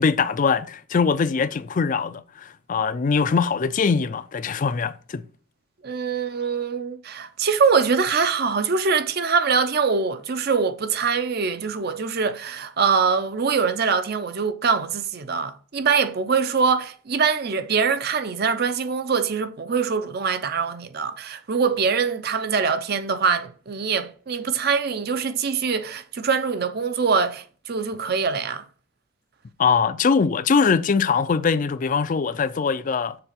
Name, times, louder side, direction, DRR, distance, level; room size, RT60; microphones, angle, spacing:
voice 1, 0.0-5.2 29.6-33.2, left 5 dB, 40° left, 0.4 m, -22 dB
voice 2, 5.8-28.6, right 5 dB, 50° right, 0.6 m, -23 dB
6.8 x 3.9 x 5.8 m
head